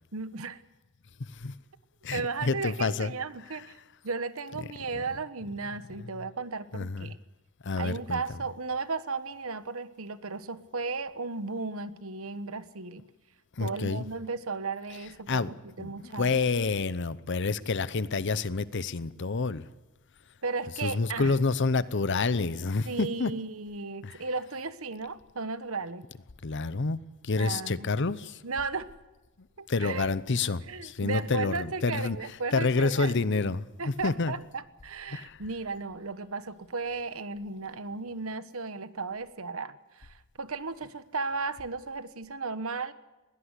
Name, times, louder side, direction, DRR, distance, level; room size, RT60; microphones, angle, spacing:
voice 1, 0.1-0.6 2.1-3.8 4.0-7.2 7.8-13.1 13.6-16.3 20.4-21.4 22.8-26.1 27.4-27.9 28.4-28.9 29.6-33.3 33.8-42.9, right 4 dB, 70° right, 1.1 m, -35 dB
voice 2, 1.2-1.5 2.0-3.1 6.7-7.1 7.6-8.2 13.6-14.0 15.3-15.5 15.8-19.7 20.8-23.3 24.0-24.1 26.4-27.0 27.2-28.4 29.7-32.2 32.5-34.3 35.1-35.4, left 4 dB, 55° left, 0.8 m, -28 dB
21.0 x 17.5 x 8.2 m
head